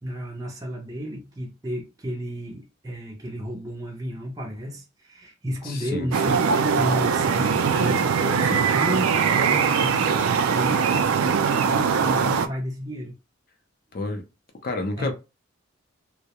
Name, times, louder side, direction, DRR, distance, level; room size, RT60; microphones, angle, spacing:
voice 1, 0.0-13.2 15.0-15.1, equal, 15° right, 0.5 m, -32 dB
voice 2, 5.6-6.3 8.5-8.7 13.9-14.2 14.6-15.1, left 2 dB, 45° left, 0.5 m, -30 dB
sound 1, 6.1-12.5, right 6 dB, 85° right, 0.3 m, -21 dB
2.3 x 2.1 x 2.8 m
head